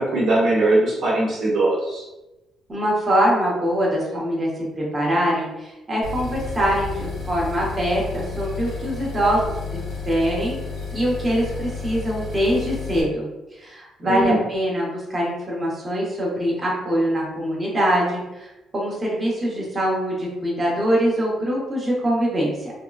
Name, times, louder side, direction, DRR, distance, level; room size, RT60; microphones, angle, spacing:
voice 1, 0.0-2.0 14.0-14.4, right 2 dB, 65° right, -6 dB, 1.1 m, -20 dB
voice 2, 2.7-4.5 4.8-9.8 10.1-10.5 10.9-13.3 13.6-22.7, equal, 25° right, -5 dB, 1.0 m, -23 dB
sound 1, 6.0-13.0, left 4 dB, 90° left, 1.4 m, -32 dB
3.5 x 2.1 x 2.4 m, 0.99 s
cardioid pair, 90°, 0 cm